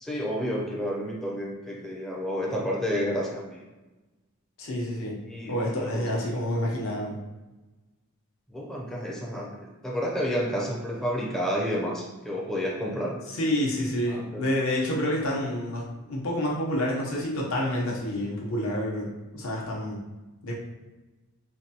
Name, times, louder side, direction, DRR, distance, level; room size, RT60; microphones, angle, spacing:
voice 1, 0.0-3.6 5.3-6.2 8.5-13.2 14.1-14.4, equal, ahead, -3 dB, 0.4 m, -30 dB
voice 2, 4.6-5.2 5.5-7.2 13.3-20.0 20.4-20.5, left 1 dB, 65° left, -3 dB, 0.8 m, -28 dB
4.5 x 2.2 x 2.8 m, 1.1 s
head